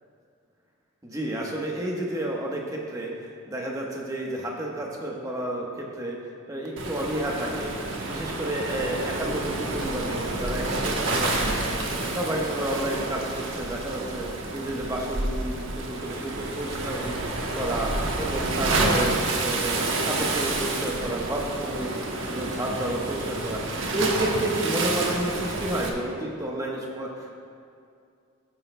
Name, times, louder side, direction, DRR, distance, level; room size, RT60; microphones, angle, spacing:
voice 1, 1.0-3.1 3.5-6.2 6.5-17.2 17.5-19.8 20.1-27.4, right 1 dB, 15° right, -2 dB, 1.1 m, -31 dB
Waves surf, 6.8-25.9, right 2 dB, 70° right, 1.1 m, -29 dB
15.0 x 9.3 x 2.2 m, 2.4 s
head